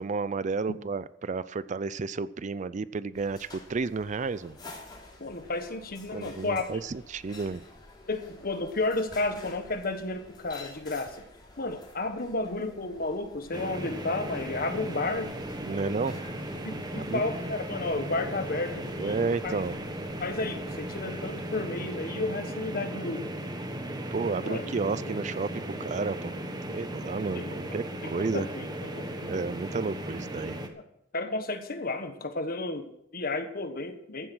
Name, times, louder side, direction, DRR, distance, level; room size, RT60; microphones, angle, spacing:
voice 1, 0.0-4.6 6.1-7.6 15.6-16.1 17.0-17.2 18.9-19.8 24.1-26.3 26.7-27.4 27.7-28.5 29.2-30.6, right 4 dB, 40° right, 16 dB, 0.4 m, -31 dB
sound 1, 3.1-21.7, left 2 dB, 25° left, 3.4 m, -51 dB
voice 2, 5.2-6.8 8.1-11.3 11.6-15.3 16.6-19.5 20.2-23.3 24.4-24.8 25.1-25.2 27.3-27.6 28.0-29.1 31.1-34.3, left 2 dB, 50° left, 8 dB, 1.4 m, -32 dB
sound 2, 13.5-30.7, right 1 dB, 20° right, 1.3 m, -36 dB
14.5 x 8.7 x 6.2 m, 0.79 s
head